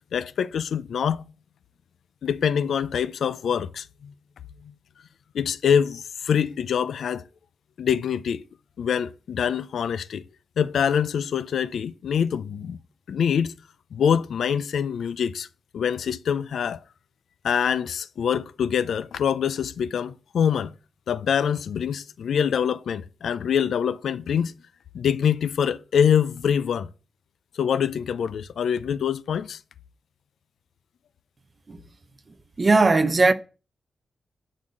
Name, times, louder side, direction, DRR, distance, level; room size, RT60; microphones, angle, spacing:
voice 1, 0.1-1.3 2.2-4.1 4.6-4.7 5.3-7.2 7.8-8.4 8.8-10.2 10.6-12.8 13.1-13.5 13.9-15.5 15.7-16.8 17.4-20.7 21.1-24.5 24.9-26.9 27.5-29.6, left 8 dB, 80° left, 0.5 m, -25 dB
voice 2, 32.6-33.3, right 3 dB, 25° right, 0.8 m, -18 dB
11.0 x 4.0 x 7.6 m
wide cardioid pair, 170°, 0 cm